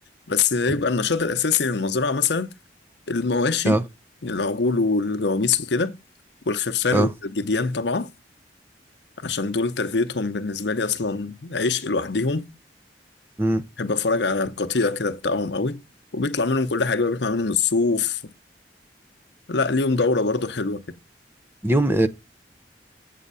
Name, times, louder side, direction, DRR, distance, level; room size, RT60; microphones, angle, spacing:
voice 1, 0.3-2.5 3.1-3.8 4.2-6.0 6.5-8.1 9.2-12.5 13.8-15.8 16.1-18.2 19.5-20.8, left 4 dB, 75° left, 0.8 m, -23 dB
voice 2, 21.6-22.1, right 1 dB, 15° right, 0.6 m, -20 dB
8.4 x 3.7 x 6.8 m
head